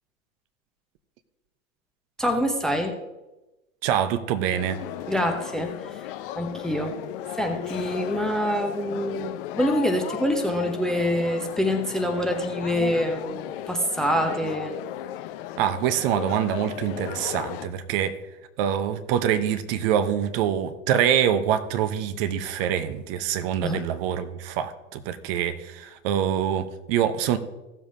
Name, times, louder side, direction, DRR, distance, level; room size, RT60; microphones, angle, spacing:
voice 1, 2.2-3.0 5.1-7.0 7.3-14.8 23.6-23.8, equal, ahead, 0.7 m, -26 dB
voice 2, 3.8-4.8 15.6-18.2 18.6-27.4, right 9 dB, 45° right, 0.9 m, -25 dB
sound 1, 4.5-17.7, left 13 dB, 40° left, 0.7 m, -35 dB
16.0 x 7.2 x 2.8 m
figure-of-eight pair, 100°, 41 cm